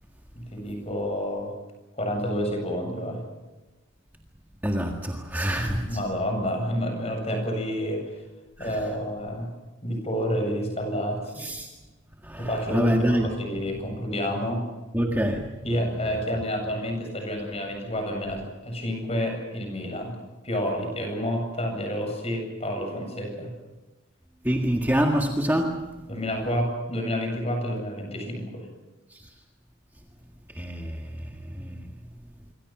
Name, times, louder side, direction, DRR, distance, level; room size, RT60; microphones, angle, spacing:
voice 1, 0.3-1.5 1.9-3.2 5.6-8.0 8.6-9.5 9.8-11.5 12.4-14.7 15.6-20.2 20.4-23.5 26.1-28.7, equal, 30° left, 3 dB, 7.9 m, -29 dB
voice 2, 4.6-6.0 8.6-8.8 11.4-11.7 12.2-13.3 14.9-15.5 24.4-25.9 29.1-29.2 30.6-31.8, equal, 10° right, 1 dB, 1.7 m, -26 dB
26.5 x 24.5 x 6.1 m, 1.1 s
head